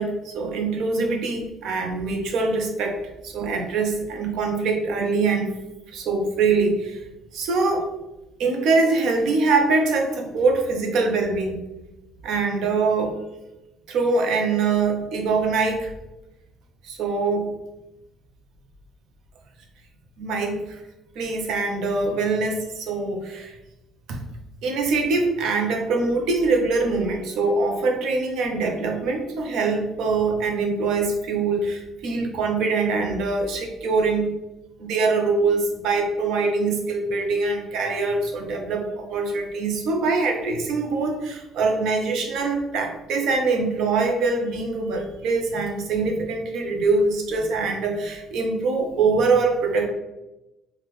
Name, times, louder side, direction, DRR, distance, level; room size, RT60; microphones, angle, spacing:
voice 1, 0.0-5.5 5.9-7.0 7.3-7.9 8.4-11.6 12.2-13.2 13.9-15.9 16.8-17.5 20.2-20.8 21.2-23.6 24.1-24.2 24.6-34.3 34.8-49.9, right 3 dB, 70° right, 3 dB, 0.7 m, -23 dB
3.6 x 2.4 x 3.1 m, 0.97 s
cardioid pair, 105°, 0 cm